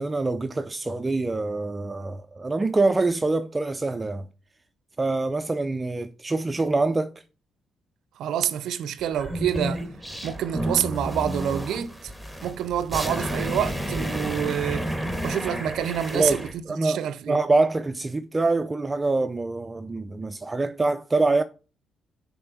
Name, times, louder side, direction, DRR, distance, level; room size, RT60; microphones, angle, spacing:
voice 1, 0.0-4.3 5.0-7.1 16.1-16.4 16.7-17.0 17.3-21.4, right 3 dB, 20° right, 0.4 m, -25 dB
voice 2, 8.2-9.9 10.2-12.1 12.4-14.9 15.2-16.5 16.8-17.4, right 9 dB, 75° right, 0.5 m, -27 dB
sound 1, 9.1-16.5, equal, 5° left, 1.6 m, -31 dB
6.7 x 4.2 x 6.0 m
cardioid pair, 90°, 0 cm